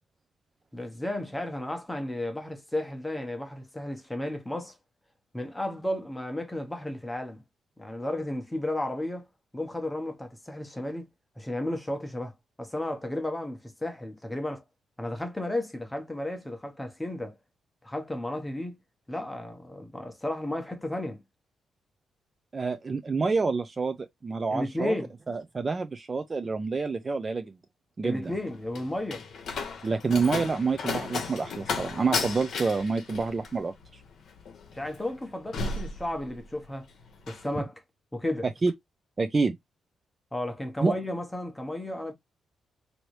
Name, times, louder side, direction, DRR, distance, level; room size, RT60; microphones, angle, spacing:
voice 1, 0.7-4.8 5.3-7.4 7.8-9.3 9.5-11.0 11.4-14.6 15.0-17.4 17.8-18.8 19.1-21.2 24.5-25.1 28.0-29.3 34.7-36.9 37.3-37.7 38.1-38.5 40.3-42.1, left 1 dB, 10° left, 0.8 m, -33 dB
voice 2, 22.5-24.9 25.3-27.6 28.0-28.3 29.8-34.0 37.6-37.7 38.6-38.7 39.2-39.5 40.8-41.0, right 4 dB, 25° right, 0.4 m, -28 dB
Slam, 28.2-36.7 37.0-37.5, left 4 dB, 60° left, 0.8 m, -35 dB
3.1 x 2.6 x 3.0 m
cardioid pair, 135°, 0 cm